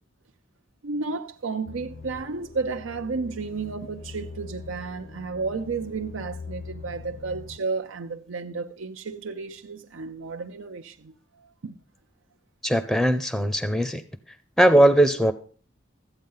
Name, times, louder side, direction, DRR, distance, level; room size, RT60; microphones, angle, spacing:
voice 1, 0.8-11.1 11.6-11.8, right 4 dB, 85° right, 0.7 m, -32 dB
sound 1, 1.7-7.6, left 4 dB, 75° left, 0.9 m, -42 dB
voice 2, 12.6-14.0 14.6-15.3, right 1 dB, ahead, 0.6 m, -19 dB
13.5 x 8.6 x 5.6 m
head